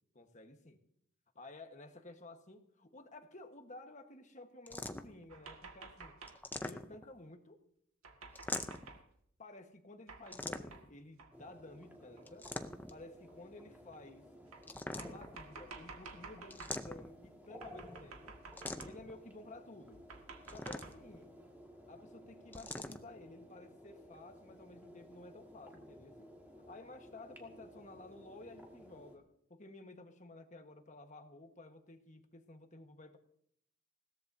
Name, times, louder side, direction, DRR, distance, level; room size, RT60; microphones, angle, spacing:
voice 1, 0.1-0.8 1.3-6.2 6.6-7.6 9.4-12.5 12.9-14.3 14.9-18.4 18.8-20.1 20.5-21.3 21.9-26.3 26.7-33.2, left 2 dB, 35° left, 6 dB, 1.3 m, -53 dB
sound 1, 4.7-5.2 6.3-7.2 8.3-9.0 10.3-11.0 12.3-13.0 14.6-15.4 16.5-17.3 18.6-19.1 20.4-21.2 22.5-23.0, left 2 dB, 10° left, 0.5 m, -43 dB
sound 2, 5.3-6.5 8.0-9.0 10.1-10.4 10.7-10.9 11.2-11.3 12.2-12.3 13.3-13.4 14.5-16.8 17.6-19.2 19.9-21.0, right 4 dB, 80° right, 1.9 m, -52 dB
sound 3, 11.3-29.2, equal, 10° right, 1.9 m, -56 dB
20.5 x 17.5 x 2.7 m, 0.69 s
head